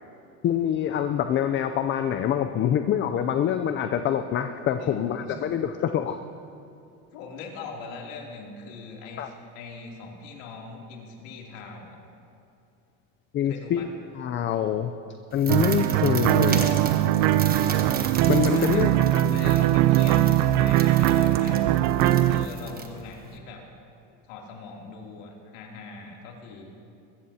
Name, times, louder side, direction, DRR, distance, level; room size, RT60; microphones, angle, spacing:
voice 1, 0.4-6.2 9.2-9.3 13.3-14.9 15.3-16.7 18.3-19.5, left 9 dB, 30° left, 8 dB, 0.5 m, -26 dB
voice 2, 4.8-5.4 7.1-12.0 13.4-13.9 18.5-21.8 22.3-23.6 24.3-26.7, left 4 dB, 75° left, -1 dB, 3.0 m, -42 dB
sound 1, 15.3-23.4, right 5 dB, 25° right, 1.1 m, -37 dB
sound 2, 15.5-22.5, right 13 dB, 65° right, 0.7 m, -21 dB
22.0 x 14.0 x 2.8 m, 2.7 s
supercardioid pair, 125°, 39 cm